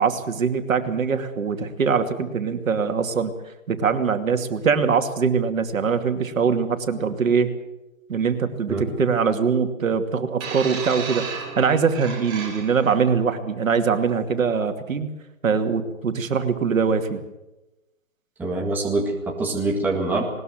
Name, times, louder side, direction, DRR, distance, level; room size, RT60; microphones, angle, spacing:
voice 1, 0.0-3.3 3.7-7.5 8.1-11.2 11.6-15.1 15.4-17.2, right 6 dB, 75° right, 7 dB, 2.6 m, -22 dB
sound 1, 10.4-12.9 13.9-14.0, right 5 dB, 25° right, 4.5 m, -33 dB
voice 2, 18.4-20.2, right 2 dB, 5° right, -1 dB, 1.9 m, -24 dB
20.5 x 20.0 x 7.7 m, 1.0 s
hypercardioid pair, 160°, 40 cm